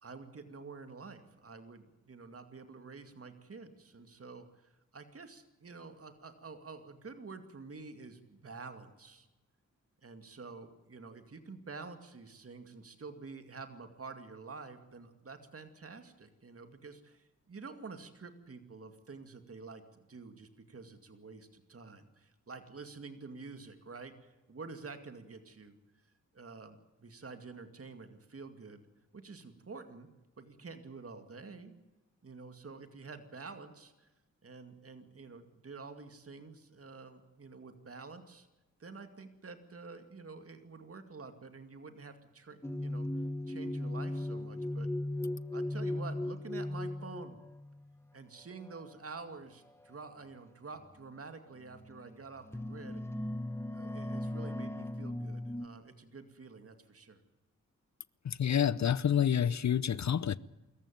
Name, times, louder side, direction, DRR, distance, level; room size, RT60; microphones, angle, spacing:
voice 1, 0.0-9.3 10.0-28.9 29.1-30.1 30.4-31.8 32.2-34.1 34.4-38.5 38.8-43.1 43.5-44.9 45.5-47.4 48.1-53.0 53.7-57.2, right 4 dB, 45° right, 2.3 m, -49 dB
sound 1, 42.6-47.8 48.6-48.9 50.1-50.2 50.9-51.0 51.7-52.1 52.4-55.7, left 1 dB, 10° left, 1.3 m, -37 dB
voice 2, 58.2-60.4, left 9 dB, 60° left, 0.7 m, -28 dB
24.5 x 14.5 x 9.2 m
cardioid pair, 70°, 31 cm